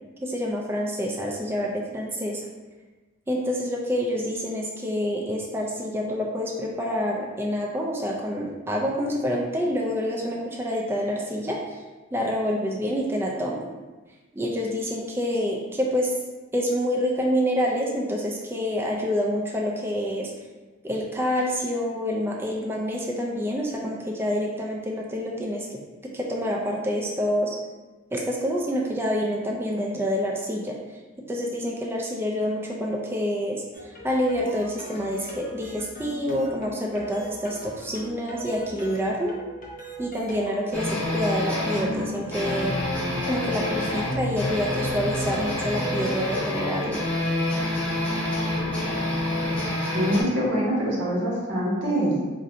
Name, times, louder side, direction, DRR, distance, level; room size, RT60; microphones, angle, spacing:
voice 1, 0.2-2.4 3.3-11.8 12.1-13.6 14.3-16.1 16.5-20.3 20.8-25.8 26.1-27.6 28.1-30.7 31.3-39.3 40.0-42.7 43.2-47.0, equal, 10° right, -2 dB, 0.3 m, -27 dB
sound 1, 33.7-40.6, right 1 dB, 40° left, 0.7 m, -41 dB
sound 2, 40.7-50.2, left 1 dB, 10° left, 1.2 m, -27 dB
voice 2, 49.9-52.1, equal, 60° right, -5 dB, 1.1 m, -24 dB
2.6 x 2.6 x 4.2 m, 1.3 s
head